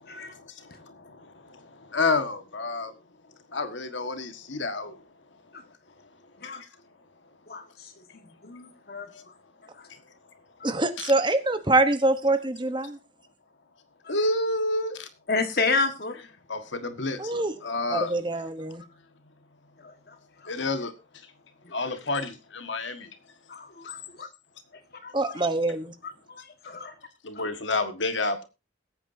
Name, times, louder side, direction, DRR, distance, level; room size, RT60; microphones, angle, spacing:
voice 1, 0.0-2.9 3.5-5.0 6.4-6.5 9.1-9.2 11.0-11.1 14.1-15.1 16.5-18.2 20.5-20.9 21.7-23.1 27.2-28.4, left 3 dB, 75° left, 1.6 m, -30 dB
voice 2, 7.5-9.1 10.6-10.8 14.0-14.1 15.3-16.2 19.8-20.1 21.6-21.8 23.5-24.3 25.0-25.4 26.0-26.9, left 4 dB, 50° left, 1.6 m, -31 dB
voice 3, 10.6-13.0 17.2-17.5 17.9-18.8 25.1-25.9, right 2 dB, 25° right, 1.0 m, -24 dB
21.0 x 8.7 x 2.7 m
head